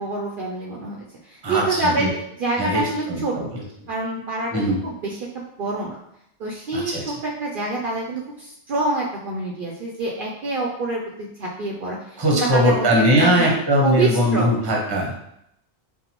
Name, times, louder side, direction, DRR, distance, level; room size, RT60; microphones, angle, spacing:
voice 1, 0.0-2.1 2.4-3.3 3.9-4.5 4.8-6.0 6.4-12.9 13.2-13.5 13.8-14.5, right 2 dB, 60° right, -2 dB, 0.6 m, -26 dB
voice 2, 1.4-2.1 2.6-3.6 4.5-4.8 6.7-7.0 12.2-15.2, equal, 25° right, -2 dB, 0.7 m, -20 dB
5.3 x 2.2 x 2.9 m, 0.76 s
omnidirectional pair, 1.2 m